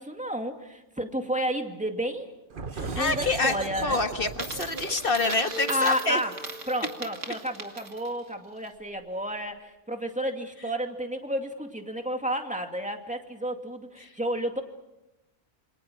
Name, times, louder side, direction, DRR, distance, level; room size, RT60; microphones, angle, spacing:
voice 1, 0.0-2.3 2.8-4.0 5.7-6.3 6.7-14.6, equal, 5° right, 4 dB, 2.4 m, -31 dB
sound 1, 2.5-7.9, right 4 dB, 45° right, 1.3 m, -38 dB
voice 2, 2.7-3.5 3.8-6.2 14.0-14.1, left 3 dB, 50° left, 7 dB, 1.6 m, -27 dB
Coin (dropping), 4.3-8.2, right 3 dB, 80° right, 2.5 m, -39 dB
28.0 x 26.0 x 6.4 m, 0.92 s
omnidirectional pair, 1.3 m